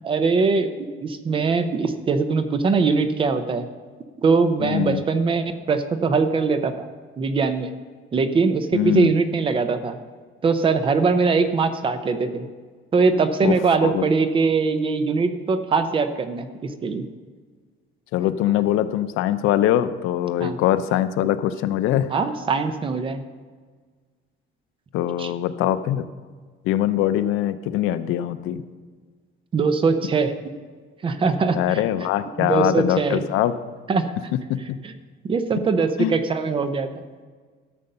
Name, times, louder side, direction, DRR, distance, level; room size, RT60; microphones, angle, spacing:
voice 1, 0.0-3.7 4.2-6.9 7.2-7.7 8.1-10.0 10.4-12.5 12.9-17.1 20.4-20.6 22.1-23.2 25.2-25.3 29.5-30.3 31.0-31.8 32.4-33.3 33.9-34.1 34.8-34.9 35.2-37.0, right 4 dB, 25° right, 10 dB, 0.6 m, -22 dB
voice 2, 4.6-5.0 8.7-9.1 13.4-13.5 13.8-14.1 18.1-22.1 24.9-26.1 26.6-28.6 31.5-33.6 34.5-34.8 36.0-36.1, left 12 dB, 80° left, 12 dB, 0.6 m, -22 dB
13.0 x 6.8 x 5.4 m, 1.5 s
cardioid pair, 170°, 21 cm